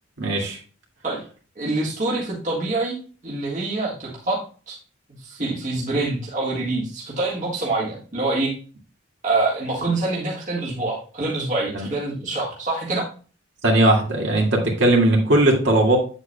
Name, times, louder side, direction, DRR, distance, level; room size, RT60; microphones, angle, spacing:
voice 1, 0.2-0.6 11.7-11.9 13.6-16.0, right 1 dB, 60° right, -1 dB, 2.2 m, -18 dB
voice 2, 1.6-3.0 3.2-4.4 4.7-4.8 5.2-8.5 9.2-13.0, right 2 dB, 40° right, -4 dB, 1.7 m, -25 dB
8.4 x 8.0 x 2.2 m, 0.38 s
head